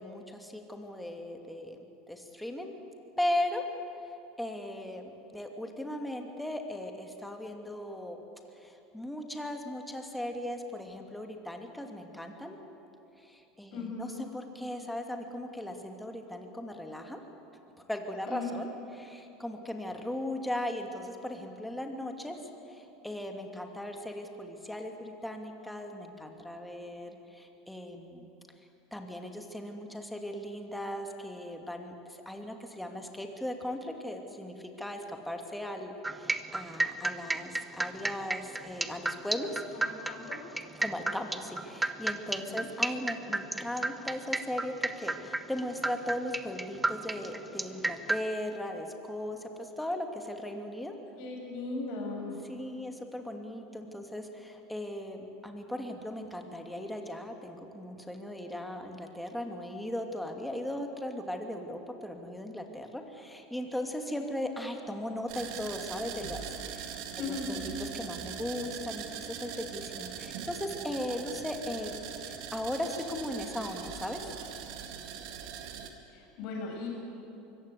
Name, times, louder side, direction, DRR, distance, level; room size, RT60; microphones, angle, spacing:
voice 1, 0.0-1.8 2.1-2.7 3.2-3.6 4.4-8.2 8.6-12.6 13.2-17.2 17.9-18.7 18.9-22.4 22.7-28.3 28.9-39.6 40.8-50.9 52.5-72.0 72.5-74.3, left 1 dB, 5° left, 3 dB, 2.4 m, -38 dB
voice 2, 13.7-14.2 18.3-18.6 39.7-40.4 42.4-42.6 51.1-52.4 67.2-67.5 76.1-76.9, left 4 dB, 60° left, 0 dB, 6.6 m, -38 dB
sound 1, 36.0-48.2, right 2 dB, 10° right, 1.0 m, -32 dB
sound 2, 65.3-75.9, right 8 dB, 60° right, 2.0 m, -41 dB
24.0 x 15.5 x 8.2 m, 3.0 s
hypercardioid pair, 80°, 0 cm